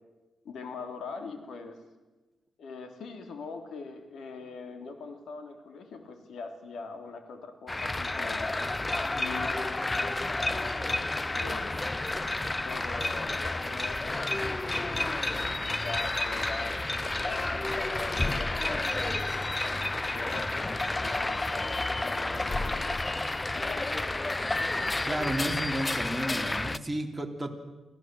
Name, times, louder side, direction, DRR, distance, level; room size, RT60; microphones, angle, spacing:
voice 1, 0.4-1.8 2.6-8.5 9.1-11.7 12.6-15.4 15.8-19.3 20.1-23.0 23.5-24.5, left 4 dB, 80° left, 6 dB, 3.1 m, -42 dB
sound 1, 7.7-26.8, left 2 dB, 20° left, 0.6 m, -30 dB
voice 2, 25.1-27.5, right 1 dB, 15° right, 3 dB, 3.0 m, -32 dB
25.0 x 16.0 x 7.7 m, 1.1 s
cardioid pair, 95°, 0 cm